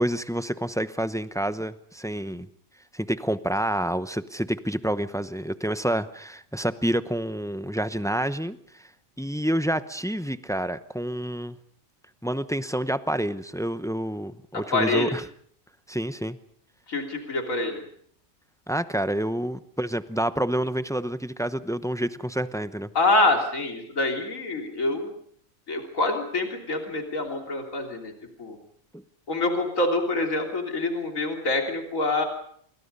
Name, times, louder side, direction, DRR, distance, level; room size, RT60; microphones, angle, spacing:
voice 1, 0.0-2.5 2.9-8.9 9.2-11.6 12.2-15.2 15.9-16.4 18.7-22.9 28.9-29.0, right 1 dB, 5° left, 13 dB, 0.6 m, -28 dB
voice 2, 14.7-15.1 16.9-17.8 23.0-25.1 25.7-28.1 28.4-28.6 29.3-32.3, left 2 dB, 75° left, 3 dB, 3.7 m, -26 dB
28.0 x 23.0 x 5.4 m, 0.62 s
omnidirectional pair, 1.4 m